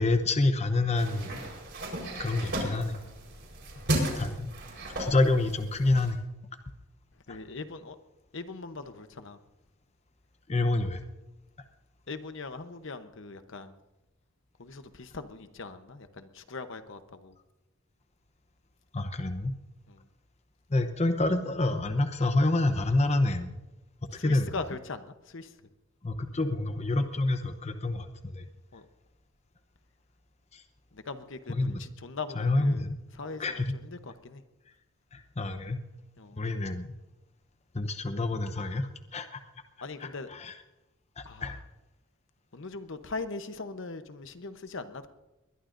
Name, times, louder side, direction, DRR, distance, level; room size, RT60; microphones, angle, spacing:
voice 1, 0.0-1.4 2.2-3.0 4.2-4.5 5.0-6.2 7.3-7.4 10.5-11.0 18.9-19.5 20.7-23.6 24.2-24.6 26.0-28.4 30.5-30.6 31.5-31.8 32.3-33.0 33.4-33.7 35.1-35.8 36.4-36.9 37.7-39.4 40.0-40.6 41.2-41.6, left 2 dB, 30° left, 8 dB, 0.8 m, -28 dB
sound 1, 1.0-6.1, right 1 dB, 55° right, 4.3 m, -34 dB
voice 2, 7.3-8.0 8.3-9.4 12.1-13.7 14.6-17.3 19.9-20.0 24.1-25.5 28.7-28.8 30.9-32.9 33.2-33.4 33.8-34.4 36.2-36.4 39.8-40.3 41.2-41.5 42.5-45.1, left 3 dB, 60° left, 9 dB, 0.9 m, -40 dB
21.5 x 20.5 x 2.6 m, 1.0 s
head